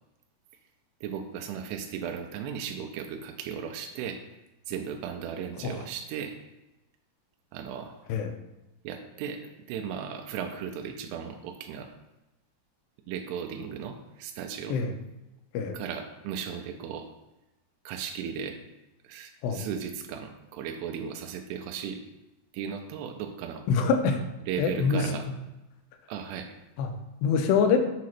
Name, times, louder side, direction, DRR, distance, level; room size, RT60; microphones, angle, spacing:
voice 1, 1.0-4.2 4.7-6.3 7.5-8.0 8.8-9.4 9.7-11.9 13.1-14.8 15.7-17.1 17.9-18.6 19.0-22.0 22.5-23.6 24.5-25.2 26.1-26.6, right 7 dB, 85° right, 4 dB, 2.7 m, -36 dB
voice 2, 23.7-24.2 24.6-25.1 26.8-27.0 27.2-27.8, left 5 dB, 90° left, 6 dB, 2.8 m, -25 dB
7.3 x 2.8 x 5.9 m, 0.99 s
omnidirectional pair, 4.8 m